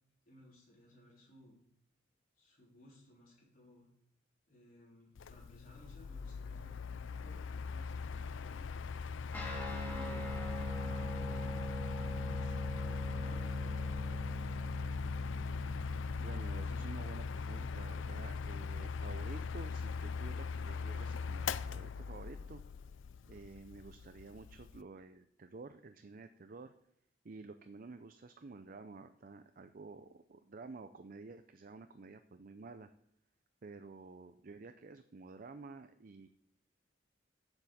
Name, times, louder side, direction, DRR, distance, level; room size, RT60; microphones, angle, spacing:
voice 1, 0.2-1.6 2.4-3.9 4.5-9.1 9.6-10.3 10.8-13.9, left 1 dB, 50° left, -5 dB, 3.8 m, -59 dB
Mechanical fan, 5.2-24.8, left 5 dB, 80° left, 0.4 m, -40 dB
Guitar, 9.3-19.1, equal, 10° left, 2.4 m, -43 dB
voice 2, 16.2-22.6 23.3-26.7 27.2-32.9 33.6-36.3, right 3 dB, 45° right, 9 dB, 0.5 m, -51 dB
7.8 x 6.9 x 7.3 m, 0.74 s
head